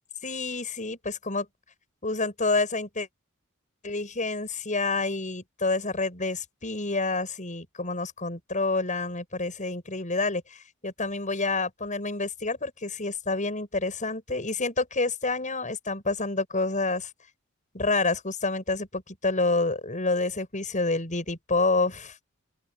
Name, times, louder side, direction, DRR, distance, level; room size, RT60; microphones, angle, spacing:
voice 1, 0.2-1.5 2.0-3.1 3.8-17.1 17.7-22.1, left 3 dB, 35° left, 7.8 m, -28 dB
open air
head